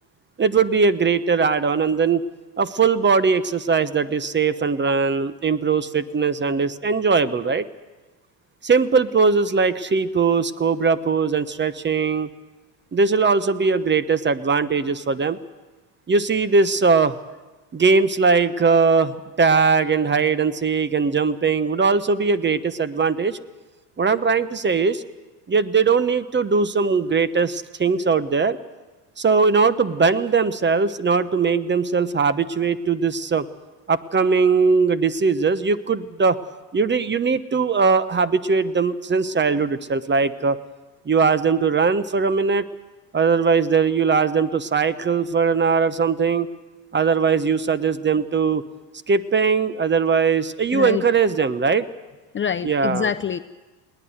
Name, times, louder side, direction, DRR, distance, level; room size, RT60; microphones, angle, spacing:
voice 1, 0.4-2.2 2.6-7.6 8.6-12.3 12.9-15.4 16.1-17.2 17.7-23.4 24.0-25.0 25.5-28.6 29.2-33.5 33.9-36.4 36.7-40.6 41.1-42.7 43.1-46.5 46.9-48.6 49.1-51.8 52.6-53.1, right 5 dB, 20° right, 15 dB, 1.0 m, -20 dB
voice 2, 50.7-51.0 52.3-53.4, left 8 dB, 25° left, 9 dB, 0.6 m, -25 dB
20.5 x 18.5 x 8.0 m, 1.2 s
hypercardioid pair, 80°, 49 cm